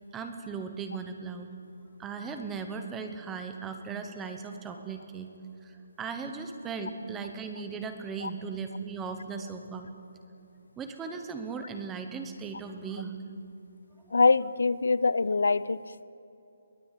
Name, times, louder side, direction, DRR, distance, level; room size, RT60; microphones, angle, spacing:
voice 1, 0.1-1.5 2.0-5.3 5.6-9.9 10.8-13.2 14.0-14.2, right 5 dB, 5° right, 6 dB, 0.9 m, -37 dB
voice 2, 14.1-15.8, left 4 dB, 80° left, 18 dB, 0.7 m, -24 dB
22.5 x 17.5 x 8.4 m, 2.8 s
hypercardioid pair, 180°, 0 cm